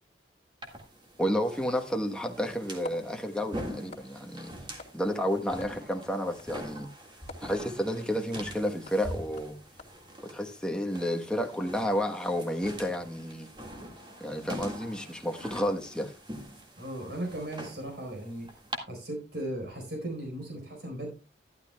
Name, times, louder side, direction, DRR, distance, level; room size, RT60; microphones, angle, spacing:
sound 1, 0.6-18.8, equal, 25° right, 1.8 m, -44 dB
voice 1, 1.2-4.5 4.9-6.9 7.4-9.6 10.2-13.5 14.2-16.1, equal, 5° left, 1.1 m, -31 dB
sound 2, 2.5-11.1, left 1 dB, 35° left, 2.8 m, -48 dB
voice 2, 16.8-18.5 18.8-21.1, right 1 dB, 65° right, 4.2 m, -37 dB
12.0 x 12.0 x 2.2 m
head